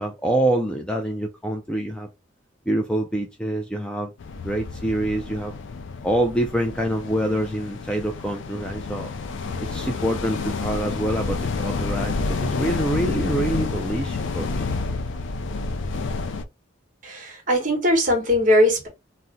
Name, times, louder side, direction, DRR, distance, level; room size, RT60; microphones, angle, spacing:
voice 1, 0.0-2.1 2.7-4.1 4.4-5.5 6.0-9.1 9.6-14.7, right 1 dB, 5° left, 0.3 m, -26 dB
sound 1, 4.2-16.4, left 3 dB, 75° left, 0.4 m, -29 dB
voice 2, 17.0-18.9, left 1 dB, 45° right, 1.1 m, -20 dB
2.7 x 2.0 x 3.6 m
head